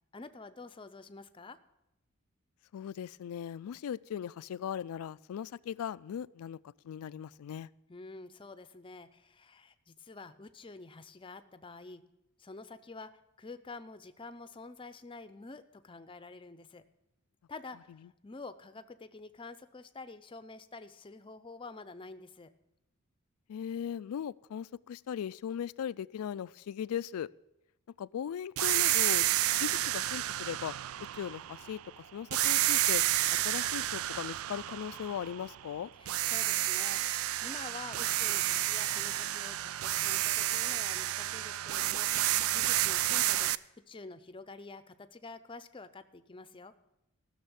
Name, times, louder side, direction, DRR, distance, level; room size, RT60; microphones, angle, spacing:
voice 1, 0.1-1.6 7.9-12.0 12.4-13.1 13.4-16.8 17.5-22.5 36.0-46.7, left 3 dB, 25° left, 12 dB, 0.5 m, -48 dB
voice 2, 2.7-6.6 6.8-7.7 23.5-27.3 28.0-29.3 29.6-33.0 33.4-35.9, left 8 dB, 85° left, 19 dB, 0.3 m, -38 dB
sound 1, 28.6-31.8 32.3-35.7 36.1-43.6, right 14 dB, 70° right, 0.3 m, -30 dB
15.0 x 6.6 x 7.0 m, 0.89 s
head